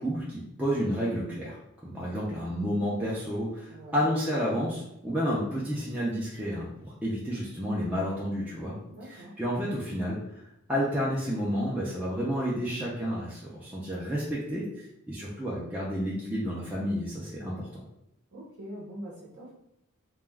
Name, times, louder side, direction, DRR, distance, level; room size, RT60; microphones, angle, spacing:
voice 1, 0.0-1.6 1.8-8.8 9.1-10.4 10.7-17.8, equal, 5° right, -7 dB, 0.4 m, -30 dB
voice 2, 3.7-4.0 8.9-9.4 18.3-19.5, equal, 60° right, -5 dB, 0.7 m, -43 dB
2.3 x 2.2 x 3.2 m, 0.82 s
head